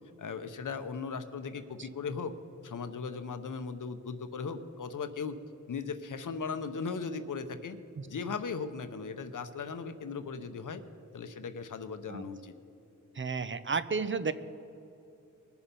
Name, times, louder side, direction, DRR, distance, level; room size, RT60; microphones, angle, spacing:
voice 1, 0.2-2.3 2.6-5.4 5.7-7.8 8.1-10.8 11.1-12.5, left 5 dB, 70° left, 10 dB, 0.8 m, -37 dB
voice 2, 13.1-14.3, right 5 dB, 40° right, 13 dB, 0.5 m, -32 dB
21.0 x 7.1 x 5.3 m, 2.7 s
wide cardioid pair, 65°, 32 cm